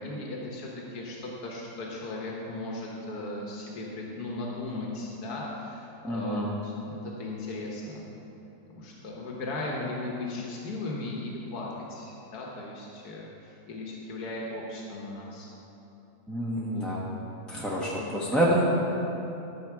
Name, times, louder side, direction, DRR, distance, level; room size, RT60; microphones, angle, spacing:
voice 1, 0.0-8.1 8.7-15.5 16.5-16.9 17.8-18.4, left 2 dB, 80° left, -3 dB, 1.7 m, -37 dB
voice 2, 6.0-6.5 16.3-17.0 17.5-18.6, right 1 dB, ahead, -7 dB, 0.9 m, -27 dB
13.0 x 6.5 x 4.6 m, 2.9 s
omnidirectional pair, 1.6 m